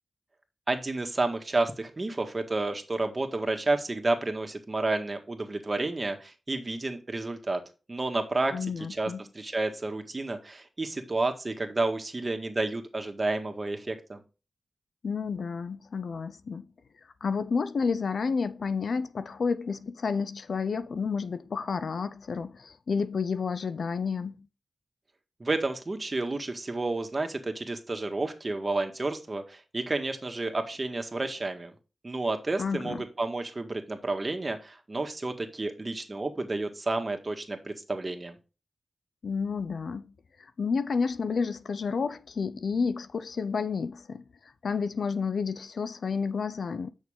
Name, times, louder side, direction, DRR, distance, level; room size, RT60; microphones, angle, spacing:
voice 1, 0.7-7.6 7.9-8.5 8.9-14.2 25.4-31.7 32.0-38.4, right 2 dB, 40° right, 1.8 m, -30 dB
voice 2, 8.5-9.3 15.0-16.6 17.2-24.5 32.6-33.1 39.2-40.1 40.4-44.2 44.6-46.9, left 5 dB, 75° left, 0.6 m, -30 dB
8.4 x 6.4 x 3.6 m
cardioid pair, 50°, 0 cm